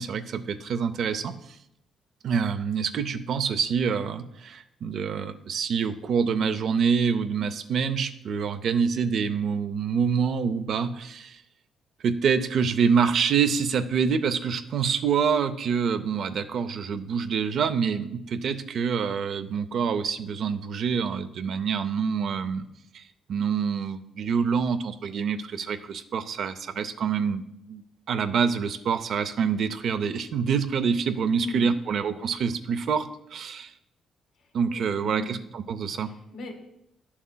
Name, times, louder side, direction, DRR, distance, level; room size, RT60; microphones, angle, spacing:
voice 1, 0.0-1.6 2.2-11.4 12.0-22.7 22.9-23.0 23.3-27.4 27.7-27.8 28.1-33.7 34.5-36.1, right 6 dB, 65° right, 10 dB, 0.5 m, -26 dB
voice 2, 31.4-31.8 34.7-35.3 36.1-36.5, left 1 dB, 75° left, 4 dB, 1.4 m, -36 dB
11.0 x 7.0 x 2.2 m, 0.80 s
cardioid pair, 90°, 0 cm